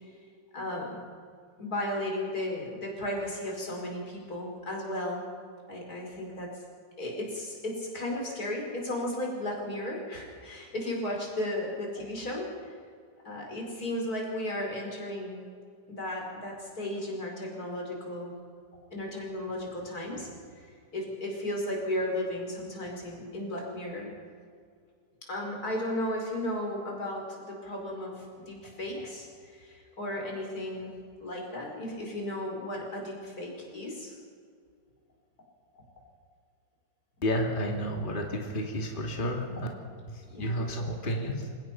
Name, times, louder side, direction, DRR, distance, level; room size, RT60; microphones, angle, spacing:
voice 1, 0.5-1.0 1.6-5.2 5.7-6.5 7.0-12.7 13.2-15.4 15.9-18.3 18.9-20.3 20.6-24.1 25.3-30.9 31.2-34.1 40.3-40.7, left 1 dB, 55° left, -1 dB, 5.4 m, -35 dB
voice 2, 37.2-39.7 40.1-41.5, equal, 30° left, 1 dB, 2.5 m, -31 dB
27.5 x 17.0 x 5.9 m, 2.2 s
omnidirectional pair, 1.9 m